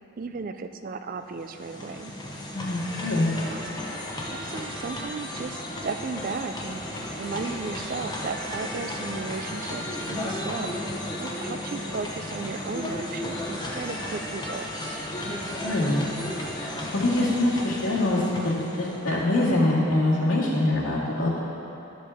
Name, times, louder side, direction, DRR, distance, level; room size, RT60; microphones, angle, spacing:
voice 1, 0.2-2.1 3.5-3.6 4.2-15.0, right 4 dB, 40° right, 8 dB, 0.3 m, -35 dB
sound 1, 1.3-19.3, left 1 dB, 20° left, 0.8 m, -34 dB
voice 2, 2.5-3.3 15.2-16.0 16.5-21.4, left 1 dB, 80° left, -7 dB, 1.9 m, -24 dB
11.5 x 7.2 x 3.5 m, 2.9 s
head